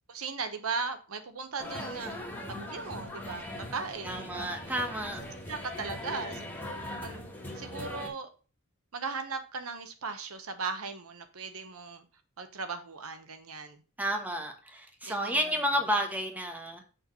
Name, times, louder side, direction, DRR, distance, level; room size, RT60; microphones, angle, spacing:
voice 1, 0.1-2.2 2.5-4.6 5.0-6.5 7.0-7.2 7.5-8.3 8.9-12.0 12.4-13.8 15.1-15.4, right 4 dB, 80° right, 1.0 m, -38 dB
sound 1, 1.6-8.1, left 1 dB, 10° left, 1.7 m, -40 dB
voice 2, 4.0-5.2 14.0-16.8, equal, 10° right, 1.2 m, -31 dB
6.5 x 4.6 x 5.4 m
head